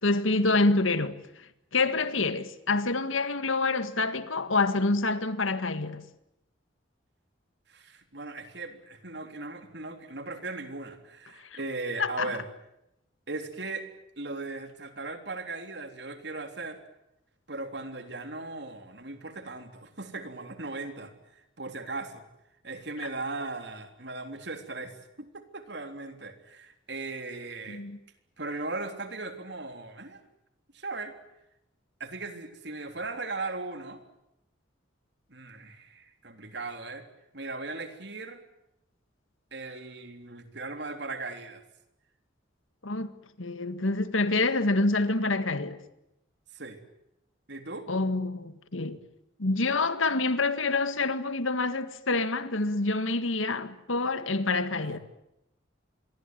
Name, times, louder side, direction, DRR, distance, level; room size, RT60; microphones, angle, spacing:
voice 1, 0.0-1.5 1.7-6.0 11.4-11.5 12.0-12.3 27.7-28.0 42.8-43.1 43.4-45.8 47.9-49.0 49.4-55.0, left 3 dB, 90° left, 1.9 m, -27 dB
voice 2, 7.7-12.5 13.3-13.9 14.2-16.8 17.5-21.1 21.6-22.2 22.6-27.8 28.4-30.2 30.7-31.1 32.0-34.0 35.3-37.1 37.3-38.4 39.5-41.6 46.5-46.8 47.5-47.9 54.8-55.0, right 3 dB, 60° right, 3.5 m, -38 dB
27.5 x 22.5 x 9.3 m
head